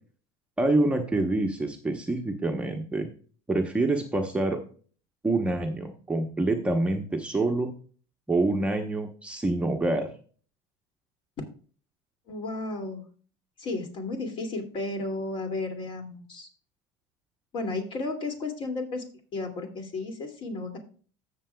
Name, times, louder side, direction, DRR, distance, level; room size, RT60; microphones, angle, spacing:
voice 1, 0.6-3.1 3.5-4.6 5.2-7.7 8.3-10.1, right 2 dB, 10° right, 2 dB, 0.9 m, -26 dB
voice 2, 12.3-13.0 13.6-16.5 17.5-19.0 19.3-20.8, left 2 dB, 40° left, 4 dB, 2.5 m, -33 dB
15.5 x 6.7 x 2.3 m, 0.41 s
cardioid pair, 135°, 13 cm